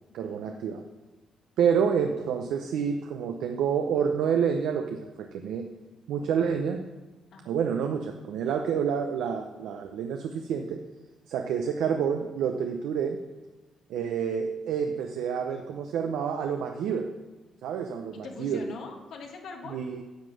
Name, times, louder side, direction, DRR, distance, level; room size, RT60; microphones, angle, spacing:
voice 1, 0.1-0.8 1.6-5.7 6.1-6.8 7.5-10.8 11.3-13.2 13.9-17.1 17.6-18.7 19.7-20.0, right 7 dB, 85° right, 4 dB, 0.7 m, -28 dB
voice 2, 7.3-7.8 18.1-19.8, left 4 dB, 70° left, 2 dB, 1.7 m, -43 dB
10.0 x 5.8 x 6.2 m, 1.2 s
cardioid pair, 90°, 0 cm